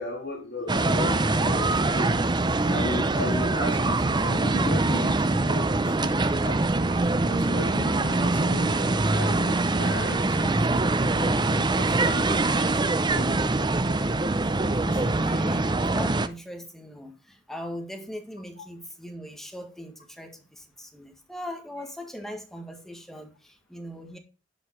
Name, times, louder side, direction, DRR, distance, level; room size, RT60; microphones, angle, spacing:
voice 1, 0.0-6.1 6.4-6.6 7.3-10.8 11.1-12.8 13.1-14.0 14.9-15.5 18.6-18.7, left 2 dB, 55° left, 2.5 m, -36 dB
sound 1, 0.7-16.3, right 2 dB, 25° right, 0.6 m, -24 dB
voice 2, 15.1-24.2, equal, ahead, 1.7 m, -40 dB
11.0 x 5.2 x 5.8 m
head